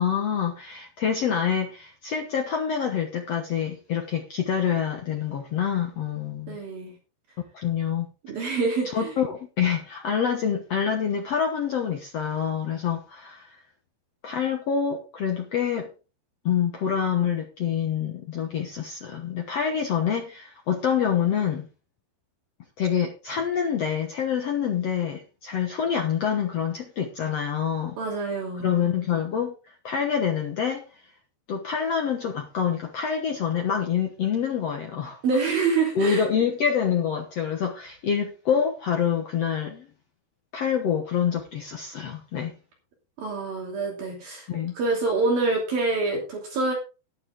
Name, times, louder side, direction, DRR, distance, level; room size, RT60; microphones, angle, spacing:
voice 1, 0.0-6.6 7.5-8.1 8.8-13.6 14.2-15.9 16.4-21.7 22.8-28.0 28.6-30.8 31.5-35.2 35.9-39.9 40.5-42.5 44.5-44.7, left 7 dB, 85° left, 1.4 m, -26 dB
voice 2, 6.5-6.9 8.3-9.1 28.0-28.8 35.2-36.2 43.2-44.5 44.8-46.7, right 3 dB, 60° right, 4.4 m, -26 dB
11.5 x 11.5 x 3.7 m
omnidirectional pair, 5.0 m